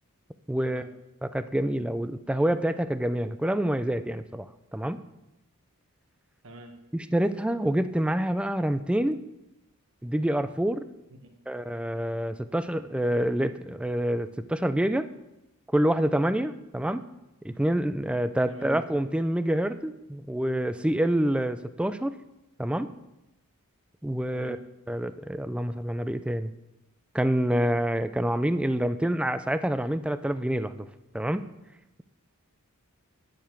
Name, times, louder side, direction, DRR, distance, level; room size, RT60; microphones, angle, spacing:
voice 1, 0.5-0.8 1.2-4.5 4.7-5.0 6.9-9.2 10.0-10.8 11.5-15.1 15.7-17.0 17.4-22.1 22.6-22.9 24.0-24.6 24.9-26.5 27.1-30.9 31.1-31.5, right 1 dB, 5° right, 12 dB, 0.3 m, -27 dB
voice 2, 6.4-6.7 18.5-18.7 24.3-24.6, right 1 dB, 65° right, 5 dB, 1.3 m, -46 dB
10.0 x 6.9 x 4.5 m, 0.92 s
head